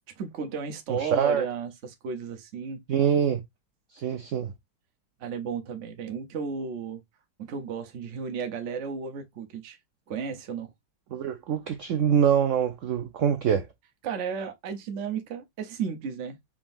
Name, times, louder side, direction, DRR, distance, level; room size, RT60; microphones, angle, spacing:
voice 1, 0.2-2.8 4.0-4.2 5.2-7.0 7.4-9.8 10.1-10.7 14.0-16.4, right 6 dB, 55° right, 0.9 m, -34 dB
voice 2, 0.9-1.5 2.9-3.4 3.9-4.5 11.1-13.7, right 8 dB, 80° right, 0.6 m, -24 dB
4.9 x 3.7 x 2.5 m
omnidirectional pair, 1.9 m